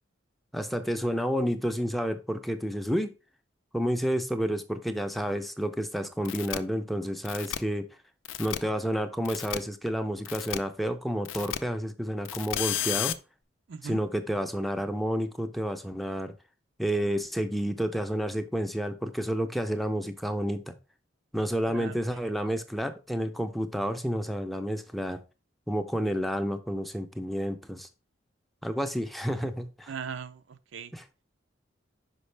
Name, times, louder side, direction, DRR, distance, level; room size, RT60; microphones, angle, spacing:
voice 1, 0.5-3.1 3.7-7.9 8.4-13.2 13.8-16.3 16.8-20.7 21.3-25.2 25.7-27.9 28.6-29.9 30.9-31.1, equal, ahead, 0.4 m, -30 dB
sound 1, 6.2-6.6 7.2-7.6 8.2-8.6 9.2-9.6 10.2-10.6 11.2-11.6 12.2-13.1, left 11 dB, 85° left, 0.5 m, -32 dB
voice 2, 13.7-14.0 21.7-22.0 29.9-30.9, right 6 dB, 75° right, 0.5 m, -39 dB
5.7 x 5.3 x 3.3 m
head